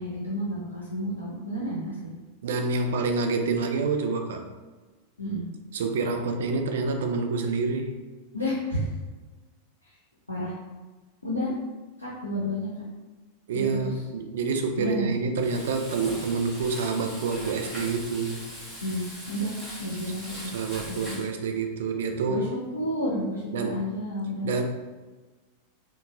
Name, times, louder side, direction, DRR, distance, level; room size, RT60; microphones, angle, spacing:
voice 1, 0.0-2.1 5.2-5.5 8.3-8.9 9.8-9.9 10.3-10.5 11.2-11.5 12.0-12.7 13.5-13.9 14.8-15.1 18.8-20.5 20.9-21.2 22.3-24.5, equal, 85° left, -6 dB, 0.5 m, -31 dB
voice 2, 2.4-4.5 5.7-7.9 13.5-18.4 20.5-22.5 23.5-23.8 24.4-24.6, right 4 dB, 60° right, 5 dB, 0.3 m, -27 dB
Frying (food), 15.4-21.3, equal, 10° left, 1.1 m, -40 dB
3.9 x 2.1 x 2.3 m, 1.3 s
figure-of-eight pair, 90°, 0 cm